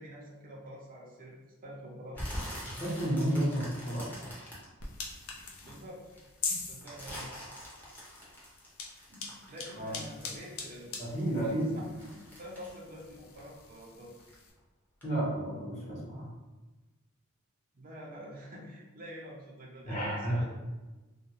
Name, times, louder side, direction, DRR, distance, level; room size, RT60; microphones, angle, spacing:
voice 1, 0.0-1.4 1.6-2.3 5.6-6.0 6.7-7.3 9.1-10.9 11.3-14.1 17.7-20.6, equal, 45° right, -3 dB, 0.5 m, -47 dB
sound 1, 2.1-5.7 6.1-10.9 11.2-13.9 14.2-14.6 15.0-15.1, equal, 10° left, 0.7 m, -44 dB
voice 2, 2.8-4.1 9.7-10.0 11.0-11.9 15.0-16.3 19.8-20.4, right 1 dB, 35° left, -6 dB, 1.0 m, -32 dB
sound 2, 4.8-14.5, left 4 dB, 75° left, 0.5 m, -43 dB
2.4 x 2.1 x 2.9 m, 1.2 s
head